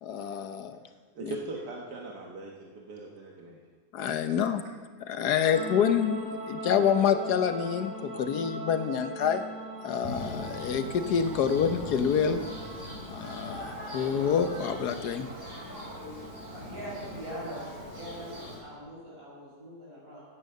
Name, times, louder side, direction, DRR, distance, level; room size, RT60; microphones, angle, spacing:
voice 1, 0.0-0.8 1.2-1.3 3.9-4.6 5.0-9.5 9.8-12.4 13.1-15.3, left 7 dB, 80° left, 9 dB, 1.4 m, -27 dB
voice 2, 1.1-3.6 4.3-4.4 5.4-5.5, right 2 dB, 90° right, -1 dB, 1.9 m, -40 dB
sound 1, 5.5-18.7, right 1 dB, 10° left, 3.7 m, -42 dB
Thunder, 10.0-18.6, equal, 35° right, 5.3 m, -40 dB
voice 3, 16.5-20.2, right 1 dB, 60° right, -6 dB, 6.3 m, -42 dB
15.5 x 9.4 x 6.7 m, 1.5 s
omnidirectional pair, 1.7 m